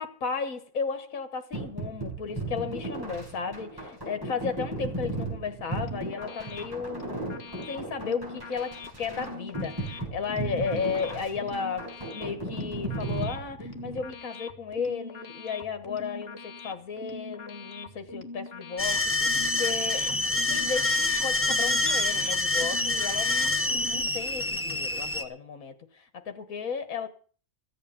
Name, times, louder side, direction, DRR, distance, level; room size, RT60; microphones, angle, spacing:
voice 1, 0.0-7.0 7.7-27.1, left 5 dB, 70° left, 1.9 m, -34 dB
sound 1, 1.5-14.1, right 2 dB, 15° right, 6.6 m, -36 dB
sound 2, 5.6-24.1, left 3 dB, 45° left, 1.8 m, -43 dB
sound 3, 18.8-25.2, left 2 dB, 10° left, 1.0 m, -26 dB
15.0 x 8.6 x 8.5 m
omnidirectional pair, 1.5 m